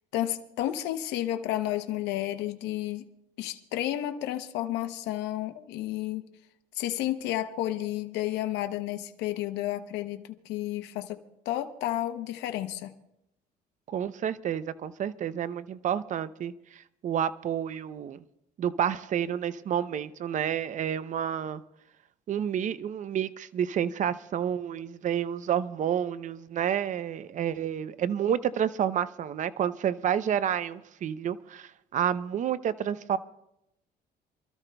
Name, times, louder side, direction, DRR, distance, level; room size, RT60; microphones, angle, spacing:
voice 1, 0.1-3.1 3.4-6.2 6.7-12.9, left 13 dB, 90° left, 0.8 m, -31 dB
voice 2, 13.9-18.2 18.6-21.6 22.3-33.2, right 9 dB, 45° right, 0.6 m, -30 dB
28.0 x 13.0 x 2.3 m
cardioid pair, 110°, 17 cm